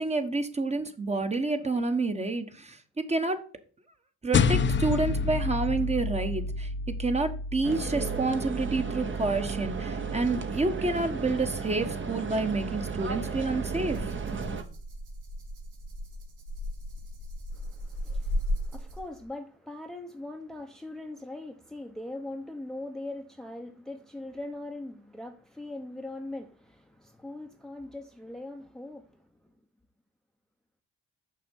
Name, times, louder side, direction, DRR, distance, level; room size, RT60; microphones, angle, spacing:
voice 1, 0.0-3.4 4.2-6.7 7.0-14.0, right 3 dB, 20° right, 1.2 m, -29 dB
sound 1, 4.3-9.0, left 4 dB, 40° left, 0.7 m, -29 dB
sound 2, 7.6-14.6, right 5 dB, 40° right, 1.2 m, -34 dB
Rattle (instrument), 13.9-19.2, equal, 85° right, 2.1 m, -35 dB
voice 2, 17.5-29.3, left 2 dB, ahead, 0.8 m, -41 dB
6.8 x 5.3 x 5.3 m
cardioid pair, 90°, 30 cm